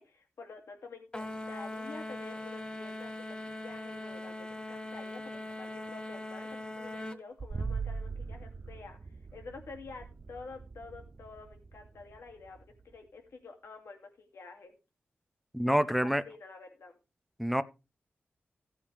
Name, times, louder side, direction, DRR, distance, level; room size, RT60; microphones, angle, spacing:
voice 1, 0.0-14.7 15.6-17.0, left 4 dB, 85° left, 2.6 m, -49 dB
sound 1, 1.1-7.2, left 1 dB, 20° left, 1.0 m, -41 dB
sound 2, 7.4-13.0, right 4 dB, 40° right, 0.5 m, -41 dB
voice 2, 15.5-16.2 17.4-17.6, equal, ahead, 0.7 m, -27 dB
16.0 x 8.4 x 3.4 m
wide cardioid pair, 105°, 4 cm